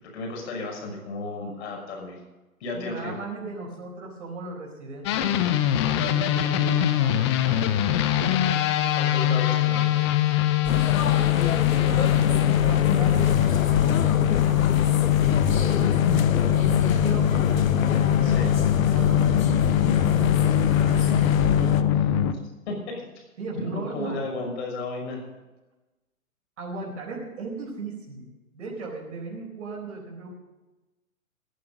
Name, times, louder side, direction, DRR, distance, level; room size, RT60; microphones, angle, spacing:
voice 1, 0.0-2.2 2.6-3.2 8.9-10.0 18.2-18.6 20.4-22.4 22.7-23.2 23.6-25.2, left 3 dB, 50° left, 1 dB, 6.2 m, -34 dB
voice 2, 2.7-8.2 10.7-11.3 11.7-20.1 23.4-24.2 26.6-30.4, right 2 dB, 60° right, -2 dB, 4.5 m, -37 dB
sound 1, 5.1-22.3, left 11 dB, 20° left, 0.6 m, -22 dB
sound 2, 10.6-21.8, left 7 dB, 65° left, 1.0 m, -27 dB
15.0 x 11.0 x 5.3 m, 1.1 s
figure-of-eight pair, 125°, 43 cm